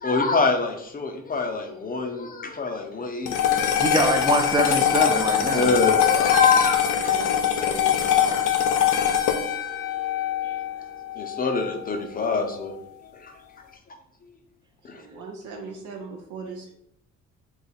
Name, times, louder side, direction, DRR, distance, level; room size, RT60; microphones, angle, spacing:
voice 1, 0.0-3.8 5.5-6.9 8.8-9.1 11.2-12.7 13.1-13.3 14.8-15.0, left 3 dB, 30° left, 4 dB, 0.6 m, -25 dB
sound 1, 3.3-11.8, left 9 dB, 85° left, 0.5 m, -22 dB
voice 2, 3.8-5.7 10.4-10.5, right 2 dB, 15° right, 4 dB, 0.6 m, -24 dB
voice 3, 7.0-8.5 14.9-16.7, right 4 dB, 80° right, 2 dB, 0.6 m, -39 dB
2.7 x 2.3 x 4.1 m, 0.72 s
cardioid pair, 90°, 30 cm